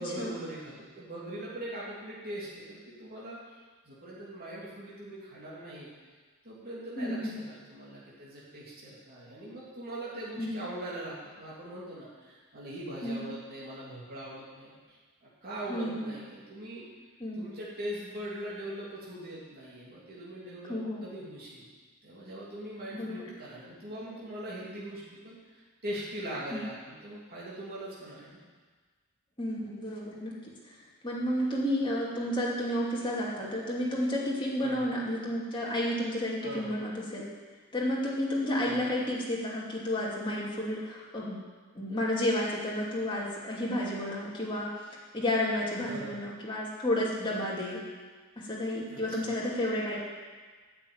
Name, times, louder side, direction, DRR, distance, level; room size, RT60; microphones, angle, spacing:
voice 1, 0.0-3.6 3.8-5.9 6.4-14.7 15.2-16.8 17.3-21.7 22.0-28.4 34.6-34.9 36.4-36.7 38.6-38.8 45.9-46.1 48.9-49.3, right 1 dB, 45° right, -8 dB, 3.1 m, -41 dB
voice 2, 7.0-7.4 10.4-10.6 13.0-13.2 15.7-16.1 17.2-17.4 20.7-21.0 22.9-23.2 26.5-26.6 29.4-30.3 30.6-30.8 31.0-37.2 37.7-41.4 41.7-44.7 45.1-47.8 48.4-50.0, left 1 dB, 20° left, -5 dB, 2.6 m, -31 dB
9.4 x 6.9 x 8.8 m, 1.4 s
head